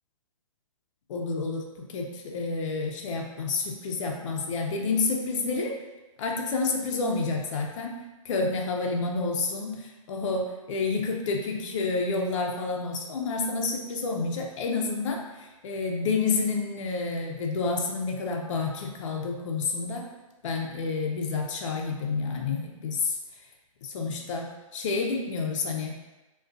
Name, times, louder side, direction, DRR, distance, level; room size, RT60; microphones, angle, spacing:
voice 1, 1.1-5.7 6.2-7.9 8.2-20.0 20.4-23.2 23.8-26.0, left 4 dB, 60° left, 1 dB, 0.4 m, -29 dB
2.2 x 2.2 x 2.5 m, 1.1 s
hypercardioid pair, 130°, 18 cm